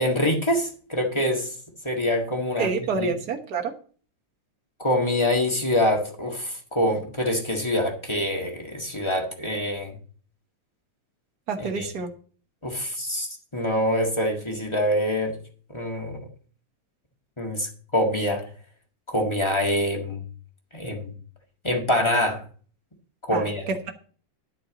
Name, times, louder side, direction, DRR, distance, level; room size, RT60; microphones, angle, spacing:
voice 1, 0.0-1.5 1.8-3.1 4.8-10.0 11.6-11.9 12.6-15.3 15.7-16.2 17.4-18.4 19.1-20.2 20.7-21.1 21.6-22.4 23.2-23.7, left 1 dB, 15° left, 1 dB, 1.0 m, -25 dB
voice 2, 2.6-3.7 11.5-12.1 23.3-23.9, right 5 dB, 45° right, 3 dB, 1.3 m, -28 dB
12.0 x 4.5 x 8.0 m, 0.43 s
omnidirectional pair, 3.4 m